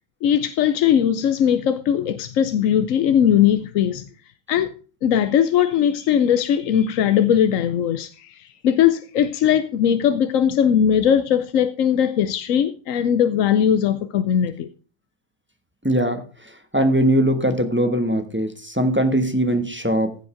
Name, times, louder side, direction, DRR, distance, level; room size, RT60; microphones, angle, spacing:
voice 1, 0.2-4.0 4.5-4.7 5.0-14.7, left 9 dB, 80° left, 1.1 m, -19 dB
voice 2, 15.8-16.2 16.7-20.2, right 1 dB, 10° right, 1.1 m, -20 dB
15.5 x 5.3 x 5.0 m
omnidirectional pair, 1.4 m